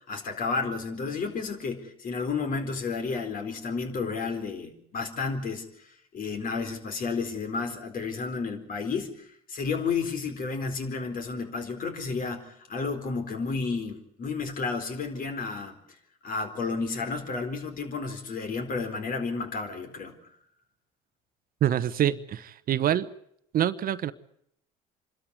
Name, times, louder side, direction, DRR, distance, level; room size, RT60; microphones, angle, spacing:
voice 1, 0.1-5.7 6.1-9.1 9.5-15.8 16.2-20.2, left 4 dB, 50° left, 7 dB, 4.2 m, -31 dB
voice 2, 21.6-23.1 23.5-24.1, right 11 dB, 55° right, 14 dB, 1.0 m, -25 dB
26.0 x 13.0 x 9.7 m, 0.71 s
supercardioid pair, 75°, 18 cm